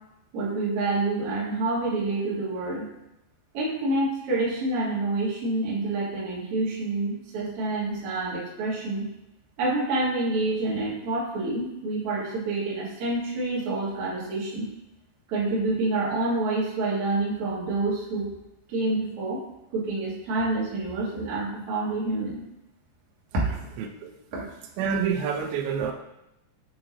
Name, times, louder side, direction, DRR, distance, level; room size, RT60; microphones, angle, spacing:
voice 1, 0.3-2.9 3.5-9.1 9.6-14.7 15.3-18.3 18.7-19.4 19.7-22.4 23.3-23.7 24.3-24.5, right 2 dB, 55° right, -6 dB, 1.7 m, -27 dB
voice 2, 23.8-24.1 24.8-25.9, right 6 dB, 80° right, 3 dB, 2.3 m, -27 dB
8.5 x 3.0 x 3.7 m, 0.88 s
omnidirectional pair, 5.1 m